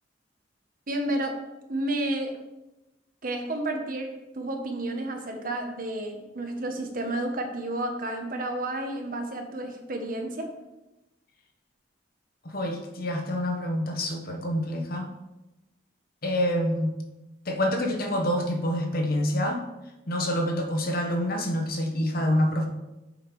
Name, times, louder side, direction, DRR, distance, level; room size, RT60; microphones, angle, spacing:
voice 1, 0.9-1.4 1.7-2.3 3.2-10.5, right 1 dB, 50° right, 4 dB, 1.1 m, -31 dB
voice 2, 12.4-15.1 16.2-16.9 17.4-19.6 20.1-22.7, equal, 55° left, 3 dB, 1.1 m, -27 dB
7.7 x 5.2 x 4.7 m, 1.0 s
head